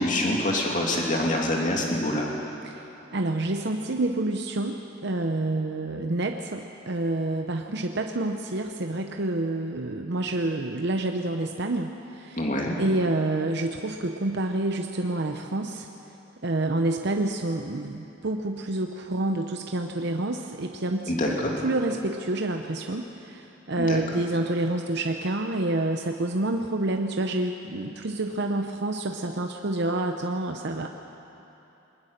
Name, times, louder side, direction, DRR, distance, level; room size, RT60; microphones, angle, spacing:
voice 1, 0.0-2.3 12.4-12.8 21.1-21.5 23.8-24.0, left 1 dB, 40° left, -1 dB, 2.8 m, -25 dB
voice 2, 3.1-12.4 12.8-15.9 16.4-30.9, right 2 dB, 60° right, 4 dB, 0.8 m, -28 dB
22.0 x 20.0 x 6.6 m, 3.0 s
head